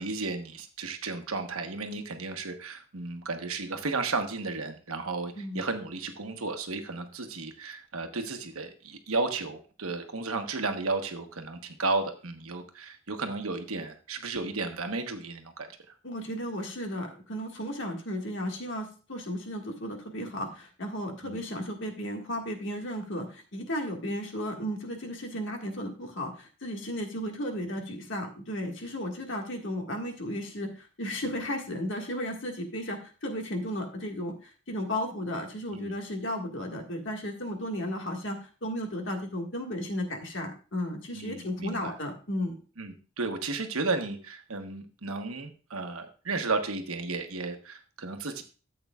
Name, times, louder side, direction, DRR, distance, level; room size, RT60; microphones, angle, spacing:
voice 1, 0.0-15.7 21.2-21.4 35.7-35.9 41.1-41.9 42.8-48.4, right 3 dB, 80° right, 6 dB, 1.2 m, -33 dB
voice 2, 16.0-42.6, equal, 60° left, 3 dB, 1.7 m, -34 dB
13.0 x 7.9 x 2.4 m, 0.36 s
head